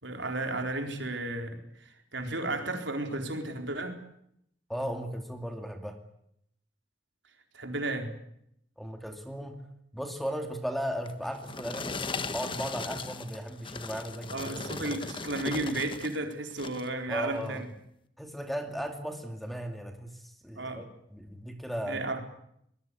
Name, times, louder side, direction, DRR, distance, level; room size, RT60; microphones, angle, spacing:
voice 1, 0.0-4.0 7.5-8.1 14.3-17.7 20.6-20.8 21.9-22.2, right 2 dB, 70° right, 5 dB, 4.2 m, -33 dB
voice 2, 4.7-6.0 8.8-9.6 9.9-15.0 17.1-17.6 18.2-22.0, equal, ahead, 5 dB, 2.6 m, -36 dB
sound 1, 11.1-16.2 16.5-16.9 17.5-17.6, left 4 dB, 25° left, 1.4 m, -38 dB
24.5 x 21.5 x 8.5 m, 0.73 s
head